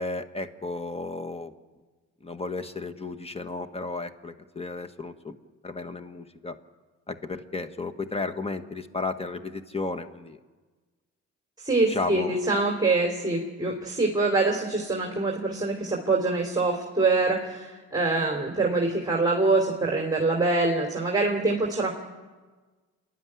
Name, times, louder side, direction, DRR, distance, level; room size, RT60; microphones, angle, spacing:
voice 1, 0.0-1.5 2.2-5.3 5.6-6.5 7.1-10.4 11.9-12.4, left 3 dB, 20° left, 8 dB, 1.6 m, -33 dB
voice 2, 11.6-21.9, right 3 dB, 15° right, 0 dB, 3.2 m, -25 dB
28.5 x 12.0 x 10.0 m, 1.3 s
cardioid pair, 90°, 30 cm